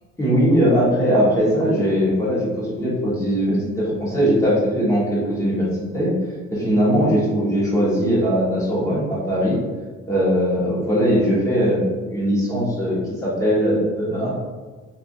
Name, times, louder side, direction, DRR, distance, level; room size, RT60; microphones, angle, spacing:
voice 1, 0.2-5.7 5.9-6.1 6.5-9.6 10.1-14.3, equal, 10° left, -7 dB, 1.3 m, -20 dB
3.1 x 2.6 x 2.6 m, 1.3 s
cardioid pair, 90°, 30 cm